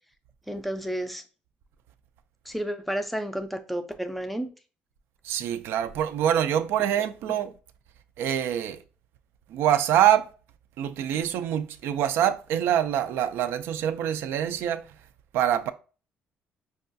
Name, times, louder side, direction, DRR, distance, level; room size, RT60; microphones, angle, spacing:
voice 1, 0.5-1.2 2.5-4.5, equal, ahead, 0.4 m, -31 dB
voice 2, 5.2-7.5 8.2-8.8 9.5-10.3 10.8-14.8 15.3-15.7, right 10 dB, 85° right, 0.3 m, -25 dB
5.3 x 2.3 x 2.5 m
cardioid pair, 150°, 4 cm